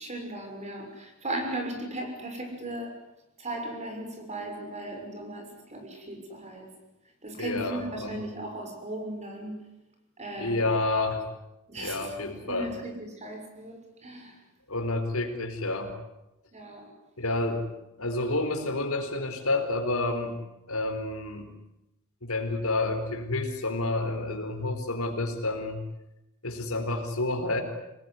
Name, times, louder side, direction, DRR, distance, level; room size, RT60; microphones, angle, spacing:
voice 1, 0.0-3.0 3.4-6.7 7.2-9.6 10.2-10.8 11.7-14.4 16.5-16.9, right 1 dB, 35° right, 4 dB, 6.4 m, -37 dB
voice 2, 7.4-8.2 10.4-11.2 11.8-12.7 14.7-15.9 17.2-17.7 18.0-20.4 20.7-21.5 22.2-25.8 26.4-27.6, left 2 dB, 80° left, 6 dB, 4.5 m, -29 dB
26.0 x 20.5 x 9.8 m, 0.89 s
head